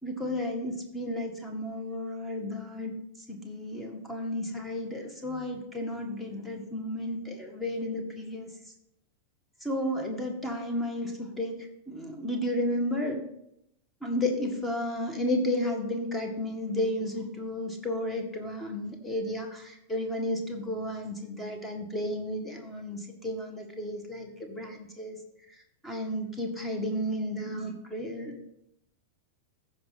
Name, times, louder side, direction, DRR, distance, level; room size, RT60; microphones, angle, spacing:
voice 1, 0.0-2.9 3.3-8.5 9.6-11.6 11.9-13.2 14.0-25.2 25.8-28.5, left 1 dB, 5° left, 3 dB, 1.8 m, -32 dB
14.5 x 5.3 x 4.2 m, 0.78 s
figure-of-eight pair, 90°, 0 cm